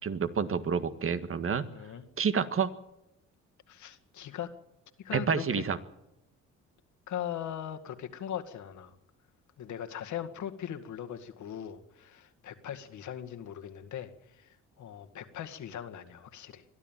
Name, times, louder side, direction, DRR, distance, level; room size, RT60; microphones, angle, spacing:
voice 1, 0.0-1.7 2.2-2.7 5.1-5.8, right 6 dB, 45° right, 11 dB, 1.7 m, -29 dB
voice 2, 1.7-2.0 3.7-4.5 5.0-5.6 7.1-9.0 9.6-16.6, left 10 dB, 70° left, 8 dB, 2.0 m, -40 dB
22.0 x 13.0 x 9.1 m, 0.87 s
cardioid pair, 90°, 30 cm